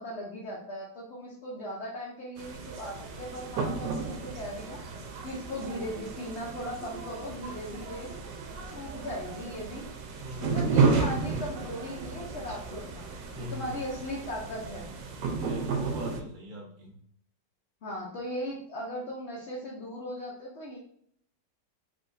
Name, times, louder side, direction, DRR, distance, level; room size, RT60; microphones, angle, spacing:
voice 1, 0.0-4.8 5.2-8.1 8.7-9.9 10.4-14.9 17.8-20.8, equal, 50° left, -4 dB, 0.8 m, -38 dB
sound 1, 2.4-16.2, right 4 dB, 75° right, 1.2 m, -32 dB
voice 2, 10.2-10.7 13.3-13.7 15.3-17.0, left 1 dB, 35° right, -2 dB, 1.0 m, -41 dB
3.5 x 2.6 x 3.9 m, 0.64 s
omnidirectional pair, 2.0 m